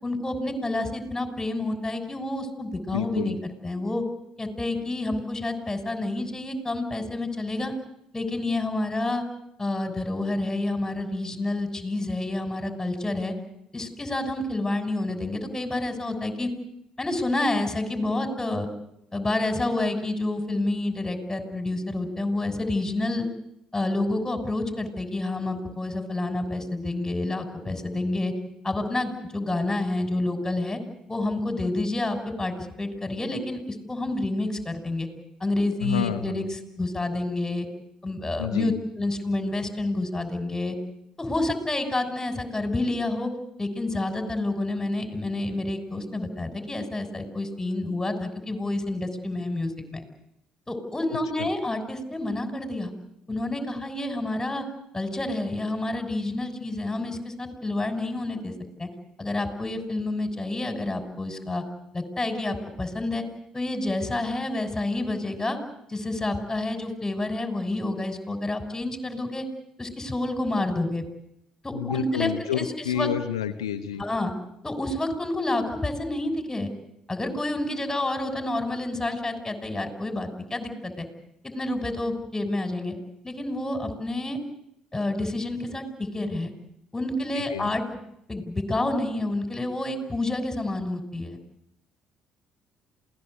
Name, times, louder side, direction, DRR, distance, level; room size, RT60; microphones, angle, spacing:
voice 1, 0.0-4.0 4.4-7.7 8.1-9.2 9.6-13.3 13.7-16.5 17.0-18.7 19.1-23.3 23.7-28.3 28.6-30.8 31.1-35.1 35.4-37.7 38.0-40.8 41.2-43.3 43.6-50.0 50.7-52.9 53.3-54.6 54.9-58.5 58.8-58.9 59.2-61.6 61.9-63.2 63.5-65.6 65.9-69.5 69.8-71.0 71.6-73.1 74.0-74.3 74.6-76.7 77.1-81.1 81.4-82.9 83.2-84.4 84.9-86.5 86.9-88.0 88.3-91.4, left 2 dB, 15° left, 6 dB, 6.4 m, -29 dB
voice 2, 2.9-3.3 35.8-36.3 38.4-38.7 71.7-74.0 87.5-87.7, left 9 dB, 90° left, 7 dB, 1.1 m, -29 dB
27.5 x 19.0 x 8.2 m, 0.79 s
hypercardioid pair, 55°, 3 cm